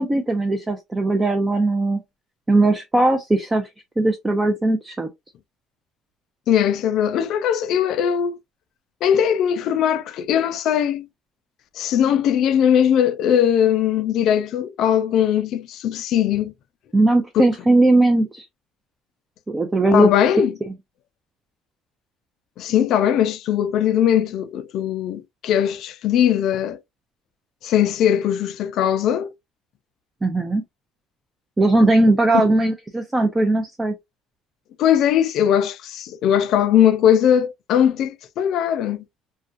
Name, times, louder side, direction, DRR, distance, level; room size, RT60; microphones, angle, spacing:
voice 1, 0.0-2.0 2.5-3.7 4.0-5.1 16.9-18.4 19.5-20.1 30.2-30.6 31.6-34.0, right 2 dB, 20° right, 0.5 m, -18 dB
voice 2, 6.5-8.4 9.0-11.1 11.8-16.5 17.3-17.4 19.9-20.5 22.6-26.8 27.6-29.3 32.3-32.5 34.8-39.0, left 9 dB, 65° left, 0.4 m, -20 dB
2.4 x 2.2 x 2.4 m
supercardioid pair, 90°, 0 cm